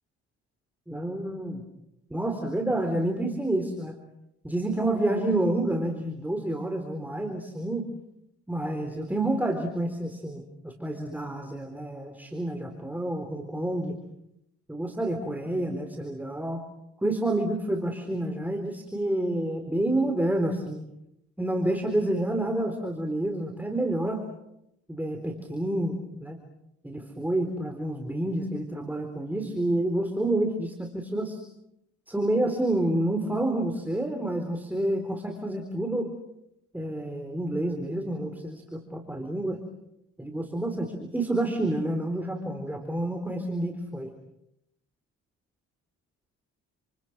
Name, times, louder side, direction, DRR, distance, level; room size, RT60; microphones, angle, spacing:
voice 1, 0.9-1.6 2.1-4.0 4.4-7.9 8.5-13.9 14.7-16.6 17.0-20.8 21.4-24.2 24.9-26.4 26.8-31.4 32.1-36.1 36.7-39.6 40.2-44.1, right 1 dB, 5° right, 5 dB, 3.9 m, -29 dB
29.5 x 28.5 x 6.1 m, 0.82 s
cardioid pair, 90°, 30 cm